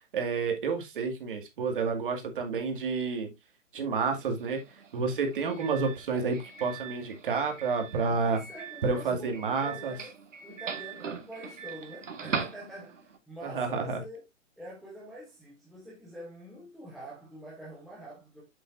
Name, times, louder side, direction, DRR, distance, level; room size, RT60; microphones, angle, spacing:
voice 1, 0.1-3.3 3.7-4.6 4.9-8.4 8.8-9.9 13.4-14.0, right 4 dB, 45° right, 2.2 m, -30 dB
Doorbell, 4.1-13.2, right 6 dB, 80° right, 2.1 m, -41 dB
voice 2, 8.0-10.1 10.4-14.2 14.6-18.4, right 1 dB, ahead, 0.8 m, -45 dB
7.7 x 7.6 x 2.5 m
hypercardioid pair, 165°, 37 cm